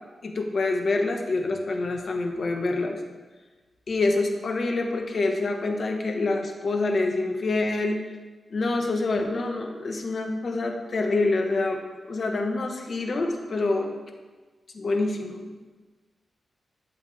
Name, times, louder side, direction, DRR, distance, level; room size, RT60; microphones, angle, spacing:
voice 1, 0.2-3.0 3.9-8.0 8.5-11.8 12.1-14.0 14.7-15.5, left 2 dB, 50° left, 4 dB, 1.2 m, -26 dB
12.5 x 7.2 x 3.5 m, 1.3 s
wide cardioid pair, 115°, 0 cm